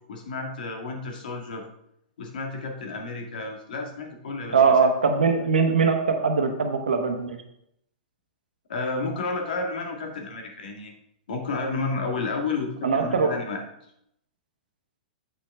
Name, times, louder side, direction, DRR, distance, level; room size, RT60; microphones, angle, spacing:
voice 1, 0.1-1.6 2.2-4.7 8.7-10.9 11.3-13.6, left 3 dB, 75° left, 2 dB, 1.8 m, -31 dB
voice 2, 4.5-7.4 12.8-13.3, right 5 dB, 90° right, 5 dB, 1.3 m, -21 dB
8.2 x 5.8 x 3.5 m, 0.76 s
hypercardioid pair, 125°, 5 cm